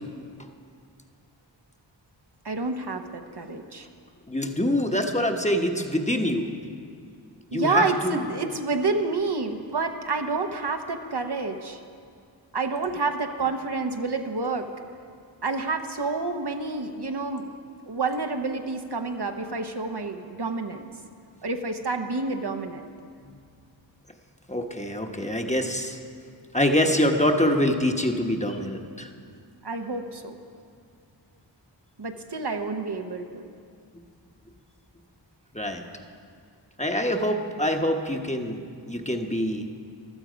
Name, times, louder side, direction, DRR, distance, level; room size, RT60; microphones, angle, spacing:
voice 1, 2.4-3.9 7.5-11.8 12.5-14.7 15.4-17.5 17.8-20.9 21.4-22.9 29.6-30.3 32.0-33.4, right 3 dB, 60° right, 5 dB, 0.9 m, -28 dB
voice 2, 4.3-6.5 7.5-8.2 24.5-26.0 26.5-29.1 35.5-35.8 36.8-38.6 38.9-39.6, left 1 dB, 15° left, 3 dB, 1.0 m, -25 dB
15.0 x 12.0 x 5.1 m, 2.3 s
wide cardioid pair, 45°, 44 cm